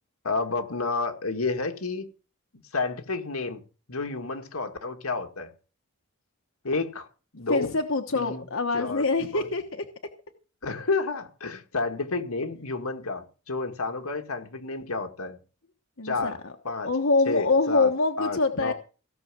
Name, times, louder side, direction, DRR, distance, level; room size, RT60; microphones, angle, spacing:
voice 1, 0.2-2.1 2.7-3.6 3.9-5.5 6.6-7.1 7.3-7.7 8.1-8.5 8.7-9.1 9.3-9.4 10.6-15.4 16.0-16.4 16.6-16.9 17.3-17.9 18.2-18.7, left 3 dB, 90° left, 2.0 m, -30 dB
voice 2, 7.5-9.8 16.0-16.5 16.8-18.7, left 3 dB, 65° left, 1.2 m, -25 dB
17.0 x 6.6 x 7.5 m
head